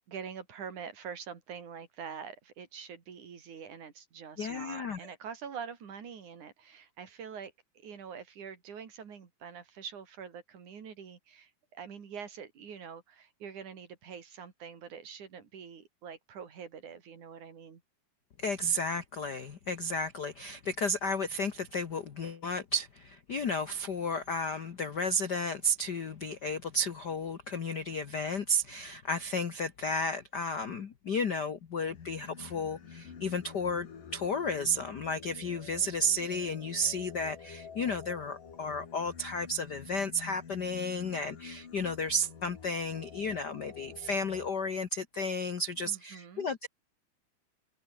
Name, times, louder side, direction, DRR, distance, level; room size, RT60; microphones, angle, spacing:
voice 1, 0.0-7.5 7.8-17.8 45.9-46.5, right 7 dB, 60° right, 4.3 m, -45 dB
voice 2, 4.4-5.1 18.4-33.9 34.1-46.7, left 1 dB, 85° left, 0.9 m, -33 dB
Singing, 31.9-44.5, left 6 dB, 70° left, 5.1 m, -49 dB
omnidirectional pair, 4.0 m